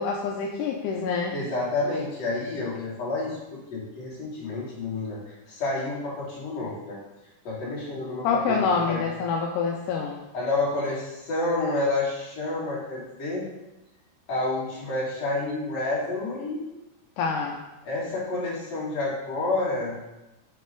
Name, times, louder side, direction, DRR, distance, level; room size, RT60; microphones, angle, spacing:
voice 1, 0.0-1.3 8.2-10.2 17.2-17.6, left 5 dB, 85° left, 0 dB, 2.2 m, -26 dB
voice 2, 1.3-5.2 5.5-7.0 7.4-9.0 10.3-13.4 14.3-16.6 17.8-19.9, left 2 dB, 55° left, -7 dB, 3.4 m, -29 dB
7.6 x 5.2 x 3.8 m, 1.0 s
omnidirectional pair, 3.6 m